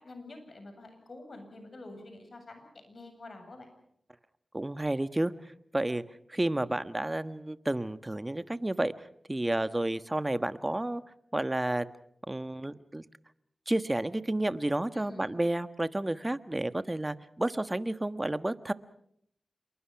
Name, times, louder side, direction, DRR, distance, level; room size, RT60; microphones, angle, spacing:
voice 1, 0.0-3.7 14.9-15.3, left 2 dB, 60° left, 6 dB, 8.0 m, -48 dB
voice 2, 4.5-6.0 6.3-8.9 9.3-11.0 11.3-11.9 12.3-13.0 13.7-18.7, right 1 dB, 25° right, 12 dB, 1.3 m, -31 dB
27.5 x 23.0 x 5.9 m, 0.71 s
cardioid pair, 50°, 0 cm